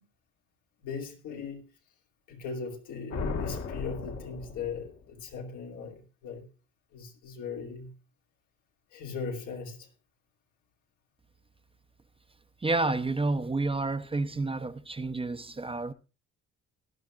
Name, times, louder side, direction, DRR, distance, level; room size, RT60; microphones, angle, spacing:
voice 1, 0.8-1.7 2.3-6.5 6.9-7.9 8.9-9.9, left 5 dB, 85° left, 2.8 m, -39 dB
sound 1, 3.1-5.1, left 4 dB, 60° left, 1.6 m, -36 dB
voice 2, 12.6-15.9, right 3 dB, 20° right, 0.7 m, -30 dB
18.5 x 11.5 x 2.4 m
cardioid pair, 90°, 30 cm